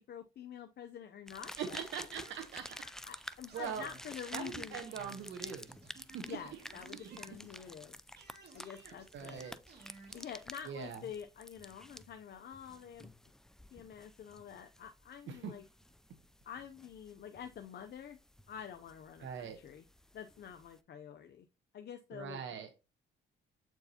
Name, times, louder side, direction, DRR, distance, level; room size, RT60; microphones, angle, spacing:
voice 1, 0.0-1.8 3.1-4.8 6.3-8.0 8.5-9.5 10.1-13.1 13.7-15.6 16.4-18.2 18.5-19.8 20.1-21.5 21.7-22.4, left 8 dB, 55° left, 6 dB, 0.6 m, -47 dB
sound 1, 1.3-20.8, left 1 dB, 5° left, 0.3 m, -51 dB
sound 2, 1.6-7.8 8.2-10.4, right 4 dB, 55° right, 2.1 m, -58 dB
voice 2, 1.6-2.8 3.5-3.9 4.3-5.7 6.1-6.4 7.0-7.4 8.8-9.6 10.6-11.0 15.3-15.5 19.2-19.6 22.1-22.7, right 7 dB, 75° right, 5 dB, 1.0 m, -42 dB
7.8 x 4.6 x 2.8 m, 0.29 s
cardioid pair, 90°, 20 cm